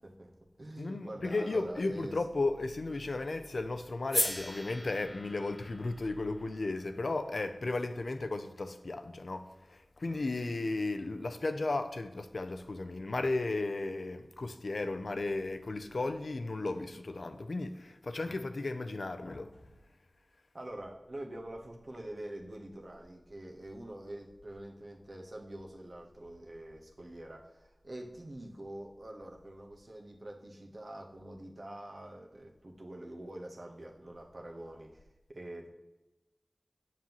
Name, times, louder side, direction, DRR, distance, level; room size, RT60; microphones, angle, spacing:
voice 1, 0.0-2.2 10.0-10.2 18.2-18.4 20.5-35.0 35.3-35.7, right 1 dB, 60° right, 1.0 m, -45 dB
voice 2, 0.8-19.6, left 2 dB, 70° left, 0.5 m, -35 dB
sound 1, 4.1-8.3, left 1 dB, 25° left, 0.8 m, -38 dB
7.4 x 5.4 x 3.0 m
wide cardioid pair, 50°, 0 cm